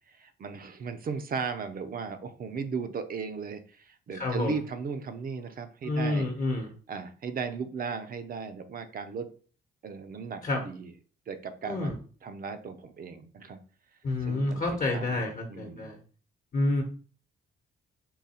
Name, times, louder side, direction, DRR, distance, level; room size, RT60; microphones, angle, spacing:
voice 1, 0.1-6.3 6.9-9.3 9.8-10.9 11.3-11.9 12.2-13.6 14.2-14.6 14.9-15.9, right 5 dB, 45° right, 9 dB, 0.6 m, -36 dB
voice 2, 4.1-4.6 5.8-6.7 10.4-10.6 11.6-11.9 14.0-16.0 16.5-16.8, left 2 dB, 45° left, 2 dB, 0.9 m, -29 dB
3.9 x 2.3 x 4.2 m, 0.40 s
cardioid pair, 90°, 20 cm